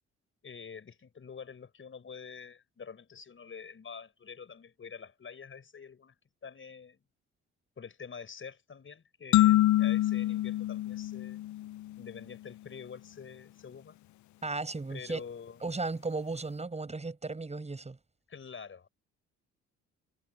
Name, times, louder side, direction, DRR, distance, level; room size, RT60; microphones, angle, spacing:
voice 1, 0.4-7.0 7.8-11.5 12.0-14.0 14.9-15.6 18.3-18.9, left 6 dB, 40° left, 5.7 m, -47 dB
sound 1, 9.3-12.0, left 15 dB, 70° left, 0.5 m, -26 dB
voice 2, 14.4-15.2 15.6-18.0, right 3 dB, 20° right, 7.9 m, -35 dB
cardioid pair, 90°, 30 cm